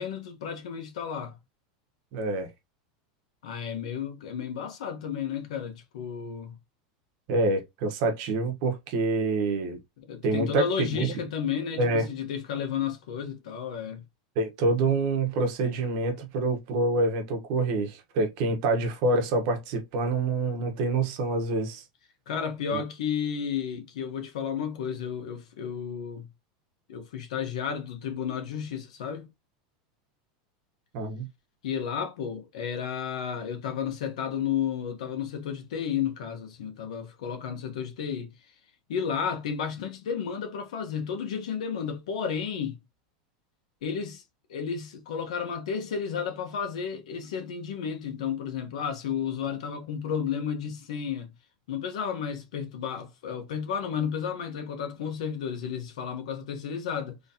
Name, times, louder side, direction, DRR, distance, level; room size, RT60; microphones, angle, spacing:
voice 1, 0.0-1.4 3.4-6.6 10.0-14.0 22.3-26.3 26.9-29.3 31.6-38.3 38.9-42.8 43.8-44.2 44.5-51.3 51.7-57.2, left 7 dB, 85° left, 1.1 m, -32 dB
voice 2, 2.1-2.5 7.3-9.8 10.2-11.1 11.8-12.1 14.4-21.8 22.7-22.8 30.9-31.3, right 2 dB, 45° right, 1.0 m, -26 dB
4.0 x 3.1 x 2.7 m
supercardioid pair, 175°, 4 cm